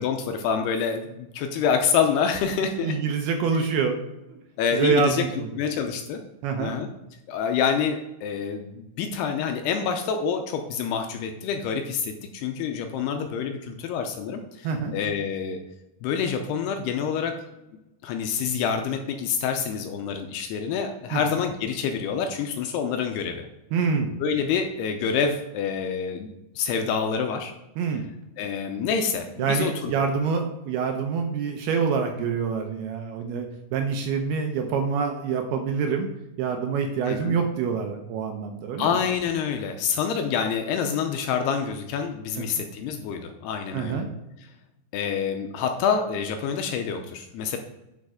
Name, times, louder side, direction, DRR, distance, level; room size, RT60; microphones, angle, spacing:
voice 1, 0.0-3.0 4.6-5.3 5.6-6.2 6.6-6.9 7.3-15.6 16.0-17.4 18.0-23.5 24.2-26.3 26.6-27.5 28.4-29.9 37.1-37.4 38.8-44.0 44.9-47.6, left 6 dB, 80° left, 5 dB, 2.5 m, -27 dB
voice 2, 2.8-4.0 4.3-4.4 4.7-5.5 6.4-6.7 14.6-14.9 21.1-21.2 23.7-24.1 27.8-28.1 29.4-36.1 36.4-39.0 42.4-42.5 43.7-44.1, right 5 dB, 75° right, 4 dB, 2.4 m, -26 dB
10.5 x 4.6 x 4.9 m, 0.94 s
omnidirectional pair, 5.1 m